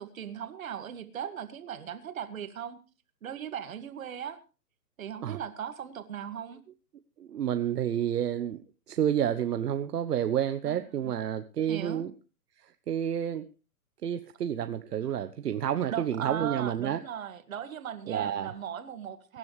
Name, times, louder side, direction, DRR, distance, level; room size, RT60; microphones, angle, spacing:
voice 1, 0.0-2.8 3.2-4.4 5.0-6.6 10.6-10.8 11.7-12.0 15.9-19.4, right 9 dB, 55° right, 9 dB, 2.2 m, -38 dB
voice 2, 7.2-8.6 8.9-12.1 12.6-13.5 14.0-17.0 18.1-18.5, right 9 dB, 75° right, 9 dB, 1.1 m, -30 dB
23.5 x 10.5 x 3.3 m, 0.32 s
hypercardioid pair, 165°, 47 cm